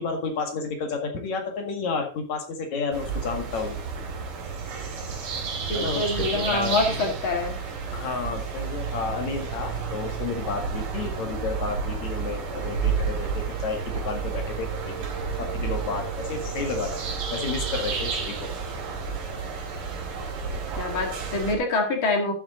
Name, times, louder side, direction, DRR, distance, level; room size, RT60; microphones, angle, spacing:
voice 1, 0.0-3.8 5.7-7.1 7.9-14.9 15.4-17.0 17.3-18.5, left 4 dB, 60° left, 4 dB, 3.0 m, -31 dB
sound 1, 2.9-21.6, right 5 dB, 75° right, 3.9 m, -31 dB
voice 2, 5.7-7.6 20.8-22.3, left 2 dB, 40° left, 3 dB, 2.5 m, -25 dB
12.5 x 7.3 x 3.8 m, 0.37 s
omnidirectional pair, 3.9 m